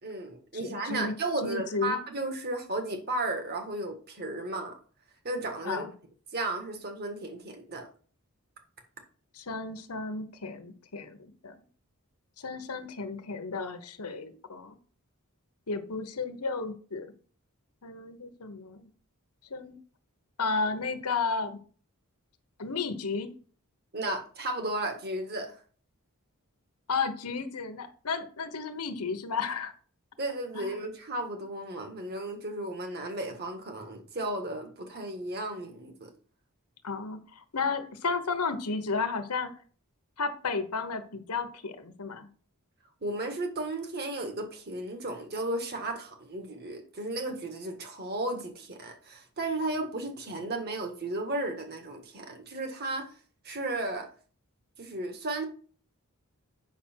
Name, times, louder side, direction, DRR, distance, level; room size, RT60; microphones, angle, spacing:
voice 1, 0.0-4.8 5.2-5.8 6.3-7.9 23.9-25.5 30.2-36.1 43.0-53.1 53.4-54.1 54.8-55.5, right 2 dB, 45° right, 5 dB, 1.8 m, -34 dB
voice 2, 0.5-1.1 1.4-2.0 5.6-5.9 9.3-11.6 12.4-14.8 15.7-17.1 17.8-18.9 19.5-19.8 20.4-21.6 22.6-23.3 26.9-29.7 30.5-30.8 36.8-39.5 40.2-42.3, left 4 dB, 90° left, 9 dB, 1.1 m, -33 dB
8.2 x 6.1 x 4.5 m, 0.42 s
head